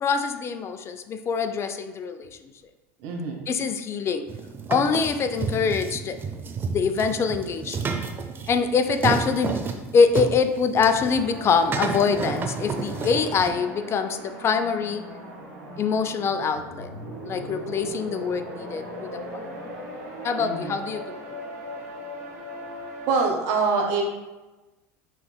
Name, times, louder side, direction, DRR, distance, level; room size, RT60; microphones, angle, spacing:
voice 1, 0.0-2.3 3.5-4.3 4.7-6.2 6.7-8.0 8.5-15.0 15.8-16.9 17.3-19.5 20.2-21.2, left 5 dB, 35° left, 9 dB, 0.3 m, -24 dB
voice 2, 3.0-3.5 20.4-20.8 23.1-24.0, right 4 dB, 65° right, 1 dB, 0.9 m, -25 dB
sound 1, 4.3-13.5, right 5 dB, 25° right, 0.5 m, -31 dB
sound 2, 11.0-23.3, equal, 85° right, 1.3 m, -38 dB
6.2 x 3.0 x 2.2 m, 1.1 s
hypercardioid pair, 85°, 8 cm